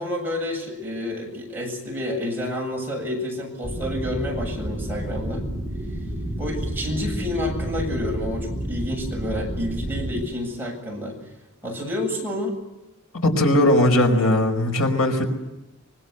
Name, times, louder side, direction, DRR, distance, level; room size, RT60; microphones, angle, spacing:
voice 1, 0.0-5.4 6.4-11.2 11.6-12.6, left 1 dB, 10° right, -1 dB, 7.9 m, -29 dB
sound 1, 3.6-10.3, equal, 30° right, 4.5 m, -30 dB
voice 2, 13.2-15.3, left 1 dB, 80° left, 5 dB, 5.1 m, -19 dB
25.0 x 24.5 x 8.1 m, 0.97 s
head